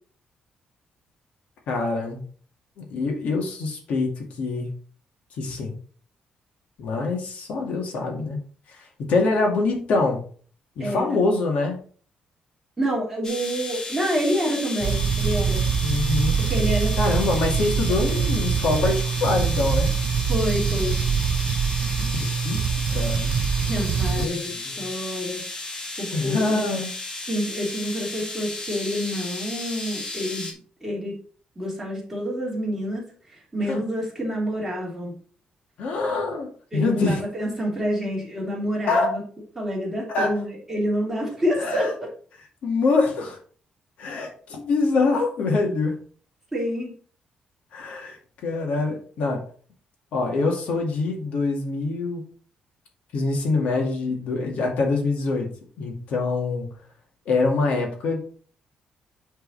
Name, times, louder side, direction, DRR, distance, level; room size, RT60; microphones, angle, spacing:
voice 1, 1.7-2.2 2.8-4.7 5.4-5.7 6.8-8.4 8.7-10.2 10.8-11.8 15.8-16.4 17.0-19.9 22.0-22.6 22.9-23.4 24.1-24.9 26.1-26.9 33.7-33.8 35.8-37.2 38.9-39.2 40.1-40.3 41.6-41.9 42.6-43.4 44.0-46.0 47.7-49.4 50.1-52.3 53.1-55.5 55.8-56.7 57.3-58.3, left 3 dB, 65° left, 1 dB, 2.3 m, -25 dB
voice 2, 10.8-11.2 12.8-15.7 16.4-16.9 18.1-18.2 20.3-21.0 23.6-25.4 25.7-26.7 27.3-30.5 30.8-31.2 31.6-35.1 36.7-39.2 39.5-42.1 46.5-46.9, equal, 10° right, -4 dB, 2.9 m, -28 dB
sound 1, 13.2-30.5, left 2 dB, 25° left, 1.6 m, -34 dB
sound 2, 14.8-24.3, right 7 dB, 60° right, 0.5 m, -24 dB
8.8 x 4.5 x 4.2 m, 0.43 s
cardioid pair, 170°, 2 cm